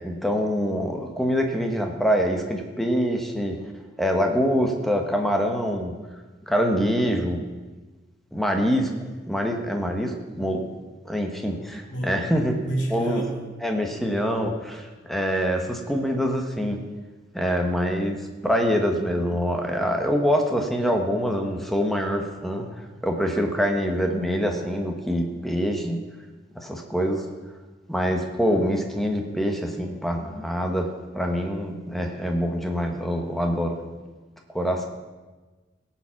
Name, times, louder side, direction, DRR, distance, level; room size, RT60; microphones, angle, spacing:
voice 1, 0.0-3.6 4.0-5.9 6.5-7.4 8.3-10.6 11.0-12.5 12.9-13.2 13.6-16.8 17.3-26.0 26.5-27.3 27.9-30.9 31.1-33.8 34.5-34.9, equal, ahead, 3 dB, 1.2 m, -25 dB
voice 2, 11.9-13.6, right 1 dB, 70° left, 0 dB, 2.8 m, -31 dB
17.5 x 7.2 x 5.9 m, 1.3 s
head